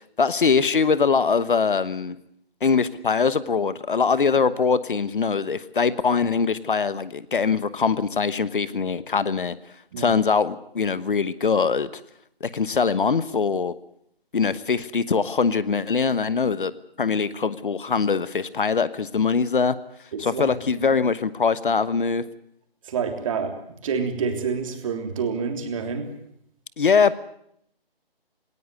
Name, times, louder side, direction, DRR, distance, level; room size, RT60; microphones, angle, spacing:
voice 1, 0.2-2.2 2.6-9.6 10.0-11.9 12.4-13.7 14.3-16.7 17.0-19.8 20.2-22.2 26.8-27.1, left 5 dB, 60° left, 16 dB, 1.2 m, -22 dB
voice 2, 20.1-20.5 22.8-23.5 23.8-26.1, right 5 dB, 35° right, 5 dB, 3.4 m, -28 dB
19.5 x 18.5 x 9.5 m, 0.70 s
figure-of-eight pair, 150°, 30 cm